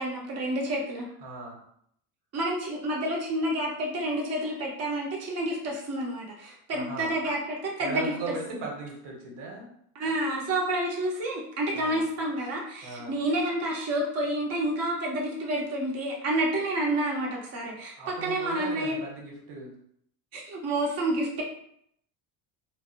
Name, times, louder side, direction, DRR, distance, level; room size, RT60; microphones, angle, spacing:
voice 1, 0.0-1.1 2.3-8.1 9.9-19.0 20.3-21.4, right 1 dB, 30° right, -2 dB, 0.7 m, -29 dB
voice 2, 1.2-1.6 6.4-7.1 7.8-9.7 11.7-12.0 12.8-13.2 18.0-19.8, right 3 dB, 55° right, -1 dB, 1.0 m, -38 dB
2.6 x 2.0 x 2.4 m, 0.68 s
supercardioid pair, 90°, 48 cm